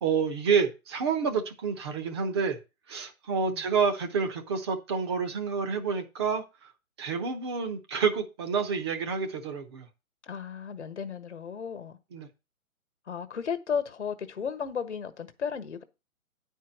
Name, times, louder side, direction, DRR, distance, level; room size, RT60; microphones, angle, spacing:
voice 1, 0.0-2.6 2.9-6.4 7.0-9.9 12.1-12.3, right 5 dB, 20° right, 0.9 m, -28 dB
voice 2, 10.2-12.0 13.1-15.8, left 6 dB, 55° left, 1.4 m, -34 dB
10.5 x 4.6 x 6.4 m
figure-of-eight pair, 135°, 42 cm